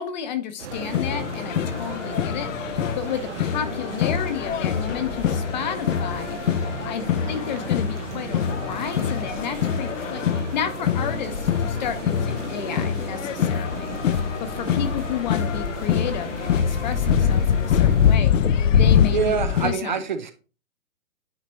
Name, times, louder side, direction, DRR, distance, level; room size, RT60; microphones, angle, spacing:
voice 1, 0.0-18.3 18.7-20.0, left 8 dB, 30° left, 0.8 m, -32 dB
sound 1, 0.6-18.2, right 7 dB, 55° right, 0.9 m, -37 dB
sound 2, 0.7-19.7, left 8 dB, 60° left, 0.7 m, -24 dB
voice 2, 19.1-20.3, right 6 dB, 35° right, 0.5 m, -26 dB
9.7 x 4.1 x 3.0 m
hypercardioid pair, 150°, 43 cm